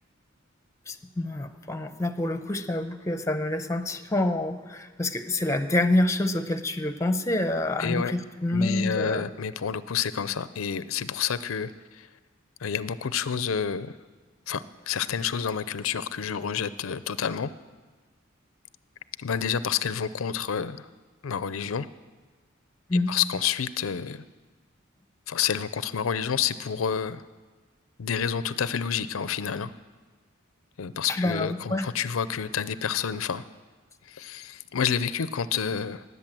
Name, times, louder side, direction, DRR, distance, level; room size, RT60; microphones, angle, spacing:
voice 1, 0.9-9.2 22.9-23.1 31.1-31.9, left 1 dB, 15° left, 9 dB, 0.8 m, -27 dB
voice 2, 7.8-8.1 8.5-12.1 12.6-13.9 14.5-17.5 19.2-20.9 21.2-21.9 23.1-24.3 25.3-27.2 28.0-29.7 30.8-33.4 34.1-36.0, left 7 dB, 85° left, 15 dB, 0.5 m, -29 dB
19.5 x 8.3 x 7.6 m, 1.3 s
head